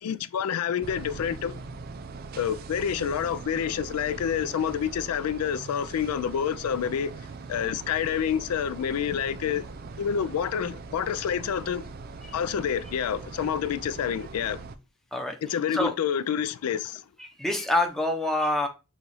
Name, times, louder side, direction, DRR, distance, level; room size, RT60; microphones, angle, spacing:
voice 1, 0.0-1.6 2.3-7.1 7.5-9.6 10.0-11.8 12.3-14.6 15.4-17.0, left 8 dB, 80° left, 0.3 m, -28 dB
sound 1, 0.8-14.8, right 4 dB, 45° right, 0.4 m, -41 dB
voice 2, 17.2-18.7, left 1 dB, ahead, 0.6 m, -26 dB
6.3 x 2.4 x 3.2 m
head